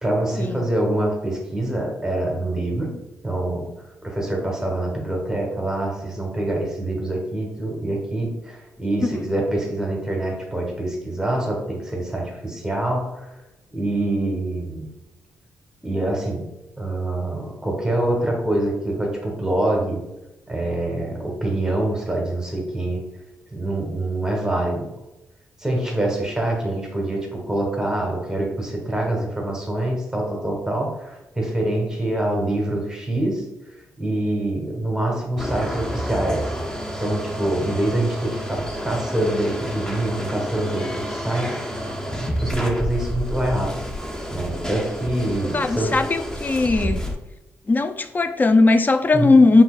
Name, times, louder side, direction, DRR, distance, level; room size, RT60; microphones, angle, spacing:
voice 1, 0.0-2.9 3.2-3.7 4.0-13.3 13.7-14.9 15.8-16.5 16.8-20.0 20.5-23.0 23.5-24.9 25.6-33.5 34.0-36.5 37.0-41.9 42.1-43.8 44.3-46.0 49.1-49.3, right 1 dB, 10° right, -1 dB, 1.3 m, -25 dB
sound 1, 35.4-47.1, equal, 10° left, 0.8 m, -29 dB
voice 2, 45.5-47.0 47.7-49.6, left 3 dB, 30° left, 10 dB, 0.4 m, -18 dB
4.4 x 3.7 x 2.4 m, 0.99 s
supercardioid pair, 55°, 6 cm